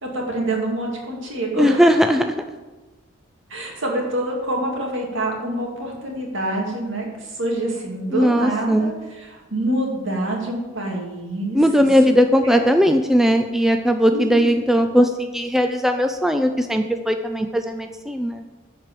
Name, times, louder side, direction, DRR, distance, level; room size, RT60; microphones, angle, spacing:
voice 1, 0.0-1.8 2.2-2.3 3.5-11.9 12.4-12.6 14.1-14.5, right 1 dB, 65° right, -1 dB, 2.4 m, -26 dB
voice 2, 1.6-2.3 8.1-8.9 11.5-18.4, equal, ahead, 6 dB, 0.4 m, -18 dB
10.5 x 4.7 x 7.6 m, 1.2 s
head